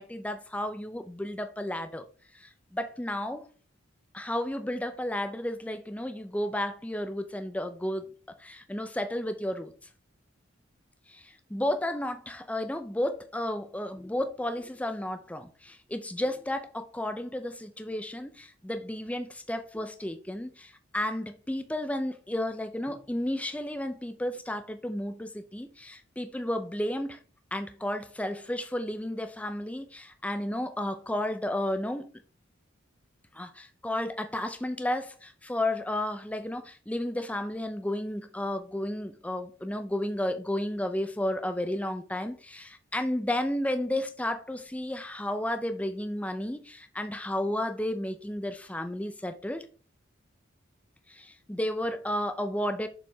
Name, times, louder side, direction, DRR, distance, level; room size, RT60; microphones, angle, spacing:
voice 1, 0.0-2.1 2.3-3.5 4.1-8.1 8.4-9.7 11.1-27.2 27.5-32.1 33.3-49.7 51.1-52.9, left 1 dB, 5° left, 0.5 m, -32 dB
7.0 x 4.6 x 3.4 m
head